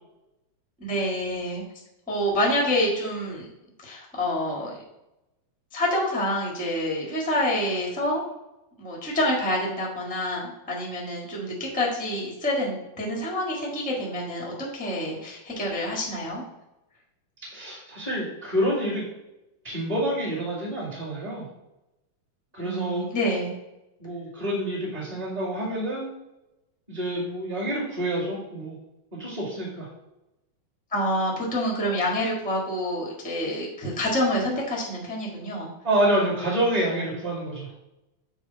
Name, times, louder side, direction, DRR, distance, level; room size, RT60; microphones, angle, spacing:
voice 1, 0.8-1.6 2.1-3.5 3.8-4.8 5.7-8.2 8.8-16.4 22.5-23.5 30.9-35.7, left 1 dB, 5° left, -3 dB, 0.8 m, -27 dB
voice 2, 17.5-19.0 19.6-21.5 22.5-23.1 24.0-26.1 26.9-28.7 29.1-29.9 35.8-37.7, right 1 dB, 15° right, -5 dB, 1.5 m, -27 dB
7.9 x 2.7 x 5.5 m, 0.94 s
omnidirectional pair, 3.4 m